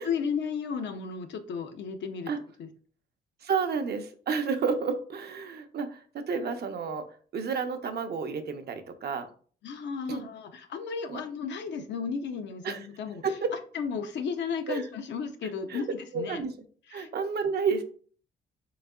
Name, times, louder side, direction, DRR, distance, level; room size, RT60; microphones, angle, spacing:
voice 1, 0.0-2.3 2.6-2.7 9.6-13.2 13.7-16.4 16.9-17.1, left 6 dB, 65° left, 7 dB, 0.6 m, -34 dB
voice 2, 3.4-7.1 7.3-9.3 10.1-10.3 11.1-11.2 12.6-12.9 13.2-13.5 14.7-14.9 15.7-15.8 16.1-16.5 16.9-17.8, right 5 dB, 55° right, 8 dB, 0.6 m, -31 dB
3.9 x 3.5 x 2.2 m, 0.43 s
cardioid pair, 90°, 20 cm